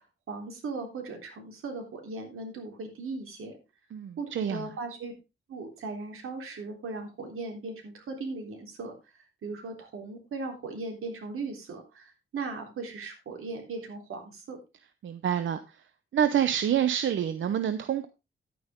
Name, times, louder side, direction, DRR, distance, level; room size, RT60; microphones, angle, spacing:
voice 1, 0.3-3.6 4.2-5.1 5.5-8.9 9.4-14.6, right 3 dB, 85° right, 3 dB, 3.7 m, -38 dB
voice 2, 3.9-4.7 15.0-15.8 16.1-18.1, right 9 dB, 65° right, 11 dB, 0.8 m, -27 dB
11.0 x 9.4 x 3.7 m, 0.27 s
wide cardioid pair, 180°, 21 cm